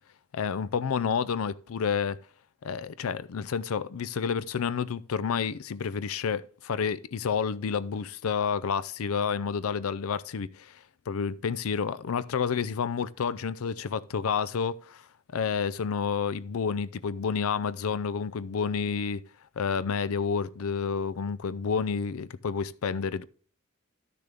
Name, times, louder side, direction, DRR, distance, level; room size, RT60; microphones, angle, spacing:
voice 1, 0.3-2.2 2.6-10.8 11.1-15.0 15.3-19.2 19.6-23.2, left 6 dB, 85° left, 0.5 m, -29 dB
12.0 x 6.7 x 3.5 m
head